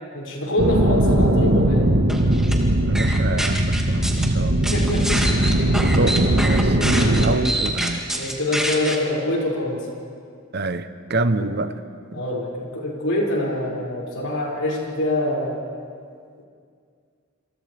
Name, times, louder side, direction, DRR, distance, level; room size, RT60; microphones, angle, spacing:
voice 1, 0.1-1.9 4.7-5.4 8.1-9.8 11.4-11.5 12.1-15.6, left 1 dB, 90° left, -4 dB, 6.5 m, -25 dB
sound 1, 0.6-7.3, right 1 dB, 90° right, 1.7 m, -19 dB
sound 2, 2.1-2.5 2.9-4.3 4.6-8.9, right 1 dB, 5° right, 2.2 m, -26 dB
voice 2, 2.9-4.7 5.8-6.8 7.2-8.0 10.5-11.7, right 2 dB, 50° right, 10 dB, 0.9 m, -26 dB
28.0 x 27.5 x 3.5 m, 2.2 s
head